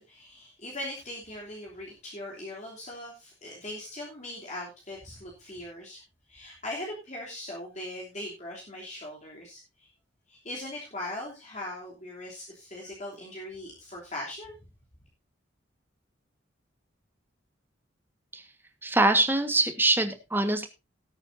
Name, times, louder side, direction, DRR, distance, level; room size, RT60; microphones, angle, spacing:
voice 1, 0.0-6.0 6.3-9.9 10.3-14.5, left 1 dB, 35° left, -3 dB, 3.1 m, -40 dB
voice 2, 18.8-20.7, right 2 dB, 10° right, 7 dB, 1.5 m, -24 dB
18.0 x 9.0 x 2.7 m, 0.27 s
head